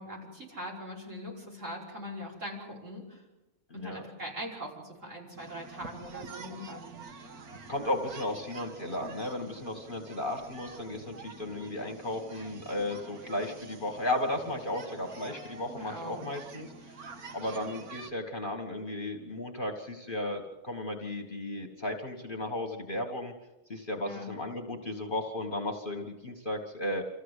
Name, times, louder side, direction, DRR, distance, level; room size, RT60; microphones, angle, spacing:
voice 1, 0.0-3.2 3.7-7.0 15.7-16.2 24.0-24.3, equal, 55° right, -3 dB, 5.8 m, -41 dB
voice 2, 3.7-4.0 7.7-17.1 17.3-23.3 23.7-27.1, left 1 dB, 35° left, 3 dB, 1.7 m, -35 dB
sound 1, 5.4-18.1, right 4 dB, 75° right, 1.9 m, -47 dB
26.5 x 15.0 x 8.2 m, 1.1 s
omnidirectional pair, 1.6 m